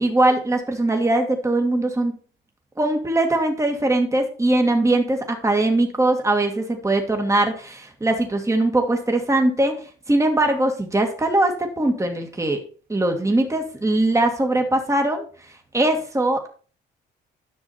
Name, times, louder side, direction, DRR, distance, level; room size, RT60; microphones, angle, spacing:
voice 1, 0.0-2.2 2.8-12.6 12.9-15.3 15.7-16.5, right 2 dB, 15° right, 4 dB, 2.0 m, -21 dB
11.0 x 6.2 x 4.4 m, 0.40 s
cardioid pair, 90°, 20 cm